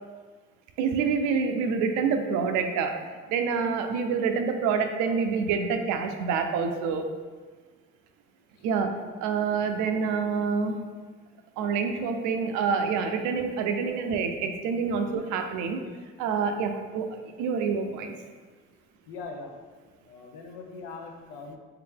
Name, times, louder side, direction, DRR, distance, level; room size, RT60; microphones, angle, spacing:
voice 1, 0.8-7.1 8.6-8.9 9.2-10.8 11.6-15.9 16.2-18.1, right 5 dB, 75° right, 6 dB, 0.5 m, -27 dB
voice 2, 19.1-19.5 20.0-21.6, left 4 dB, 85° left, 3 dB, 0.6 m, -41 dB
3.2 x 2.9 x 3.5 m, 1.5 s
supercardioid pair, 60°, 30 cm